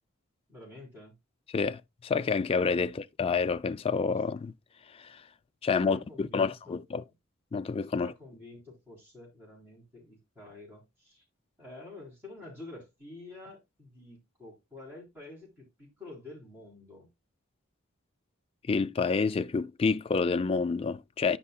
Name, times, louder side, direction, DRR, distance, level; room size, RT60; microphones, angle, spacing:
voice 1, 0.5-1.2 5.8-6.8 7.9-11.2 11.6-17.1, left 2 dB, 10° right, 4.0 m, -48 dB
voice 2, 1.5-4.5 5.0-5.2 5.6-7.0 7.5-8.1 18.7-21.4, left 5 dB, 25° left, 0.3 m, -28 dB
10.0 x 5.5 x 2.3 m
head